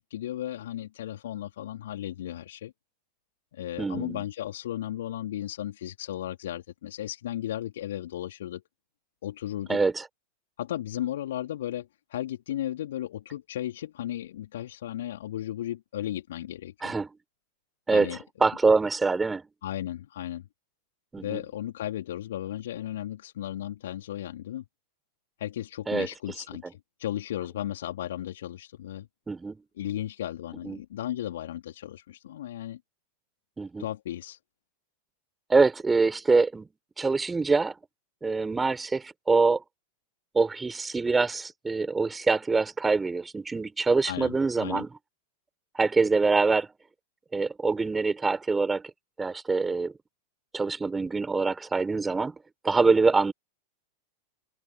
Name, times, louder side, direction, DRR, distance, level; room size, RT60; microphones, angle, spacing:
voice 1, 0.0-2.7 3.5-8.6 9.2-9.8 10.6-16.9 17.9-18.2 19.6-20.5 21.2-24.6 25.4-29.1 29.8-32.8 33.8-34.4 44.0-44.8, left 12 dB, 60° left, 3.2 m, -35 dB
voice 2, 3.8-4.2 9.7-10.1 16.8-17.1 17.9-19.4 21.1-21.4 25.9-26.1 29.3-29.6 30.6-30.8 33.6-33.9 35.5-36.7 37.0-37.7 38.2-39.6 40.3-44.9 45.7-46.7 47.3-48.9 49.2-49.9 50.5-52.4 52.6-53.3, right 4 dB, 10° right, 4.9 m, -25 dB
figure-of-eight pair, 90°, 0 cm